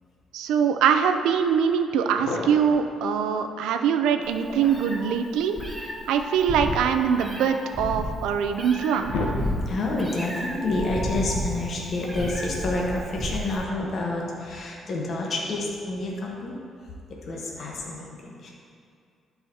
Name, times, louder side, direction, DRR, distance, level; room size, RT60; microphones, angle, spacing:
voice 1, 0.3-5.6 6.1-9.1, right 7 dB, 90° right, 7 dB, 0.4 m, -23 dB
sound 1, 1.6-1.7 2.1-2.8 4.3-5.1 6.4-7.8 8.3-8.4 8.8-9.9, left 2 dB, 85° left, 0.9 m, -33 dB
Meow, 4.3-13.6, equal, 10° right, 1.0 m, -32 dB
voice 2, 9.7-16.6 17.3-18.5, left 2 dB, 50° left, -2 dB, 1.0 m, -29 dB
11.5 x 4.8 x 2.8 m, 2.4 s
cardioid pair, 90°, 0 cm